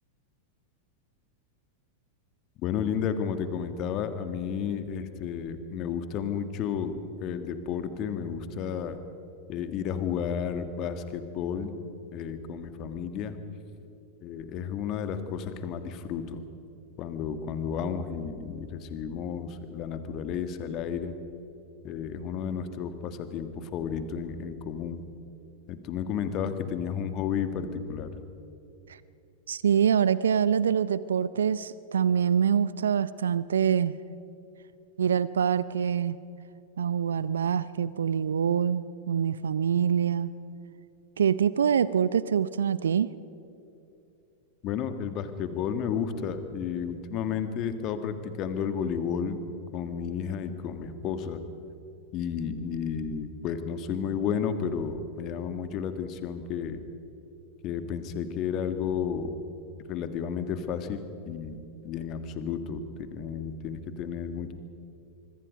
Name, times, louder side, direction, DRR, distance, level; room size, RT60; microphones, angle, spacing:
voice 1, 2.6-9.0 9.5-11.7 12.1-13.4 14.2-16.4 17.0-21.2 21.8-25.1 25.7-28.1 44.6-49.4 49.7-51.4 52.1-56.8 57.6-59.4 59.9-62.8 63.1-64.5, left 7 dB, 40° left, 9 dB, 1.8 m, -32 dB
voice 2, 29.5-34.0 35.0-36.2 36.8-40.3 41.2-43.1, right 8 dB, 70° right, 18 dB, 0.5 m, -25 dB
25.5 x 24.0 x 5.3 m, 2.7 s
figure-of-eight pair, 90°, 0 cm